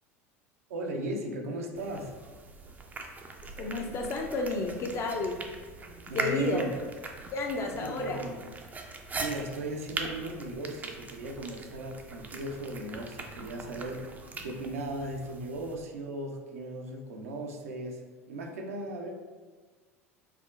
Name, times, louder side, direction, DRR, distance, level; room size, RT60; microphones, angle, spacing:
voice 1, 0.7-2.1 6.1-6.7 7.7-8.4 9.2-14.1 14.4-18.0 18.3-19.1, right 1 dB, 70° right, 1 dB, 0.6 m, -37 dB
Katze schmatzt und leckt Schüssel aus, 1.8-15.8, right 3 dB, 20° right, 0.4 m, -41 dB
voice 2, 3.6-5.4 6.1-6.7 7.3-8.3, left 3 dB, 35° left, 2 dB, 0.5 m, -31 dB
5.7 x 2.1 x 2.4 m, 1.4 s
figure-of-eight pair, 75°, 8 cm